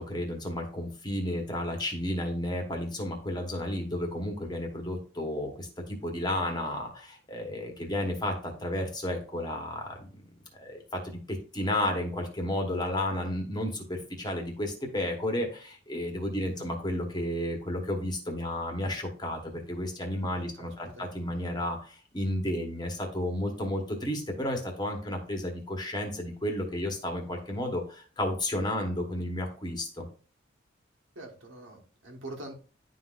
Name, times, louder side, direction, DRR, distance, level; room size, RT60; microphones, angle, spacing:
voice 1, 0.0-10.3 10.5-30.1, left 1 dB, 20° left, 2 dB, 1.2 m, -32 dB
voice 2, 16.4-16.7 20.3-21.1 31.1-32.5, right 2 dB, 75° right, 1 dB, 1.4 m, -45 dB
10.5 x 3.8 x 2.5 m, 0.38 s
head